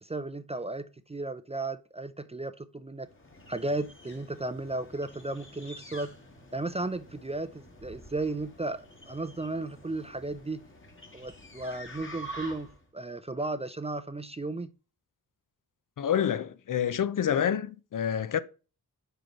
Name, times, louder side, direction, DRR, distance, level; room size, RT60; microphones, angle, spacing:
voice 1, 0.0-3.1 3.5-6.1 6.5-10.6 11.1-14.7, right 2 dB, 20° right, 0.4 m, -35 dB
sound 1, 3.0-12.9, equal, 35° left, 1.4 m, -48 dB
voice 2, 16.0-18.4, left 9 dB, 60° left, 0.5 m, -28 dB
5.0 x 4.6 x 4.4 m
cardioid pair, 70°, 36 cm